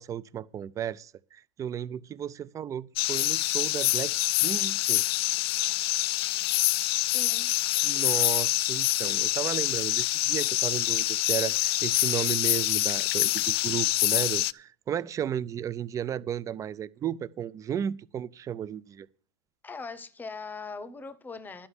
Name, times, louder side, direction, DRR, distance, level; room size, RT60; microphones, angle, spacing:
voice 1, 0.0-5.0 7.8-19.1, right 9 dB, 20° right, 0.4 m, -34 dB
sound 1, 3.0-14.5, left 18 dB, 60° left, 0.4 m, -26 dB
voice 2, 7.1-7.5 19.6-21.7, left 4 dB, 10° left, 0.9 m, -40 dB
11.5 x 5.6 x 8.0 m
supercardioid pair, 125°, 14 cm